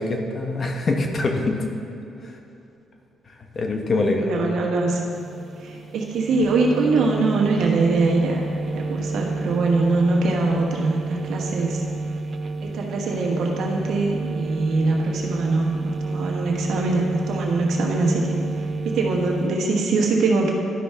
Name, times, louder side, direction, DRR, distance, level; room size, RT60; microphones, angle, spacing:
voice 1, 0.0-1.6 3.5-4.6, left 2 dB, 40° left, 3 dB, 1.0 m, -24 dB
voice 2, 4.2-5.0 5.6-11.8 12.6-18.4 18.8-20.5, right 3 dB, 75° right, -1 dB, 1.3 m, -23 dB
sound 1, 5.1-19.5, right 3 dB, 45° right, 0.3 m, -29 dB
11.5 x 5.7 x 3.5 m, 2.7 s
cardioid pair, 90°, 0 cm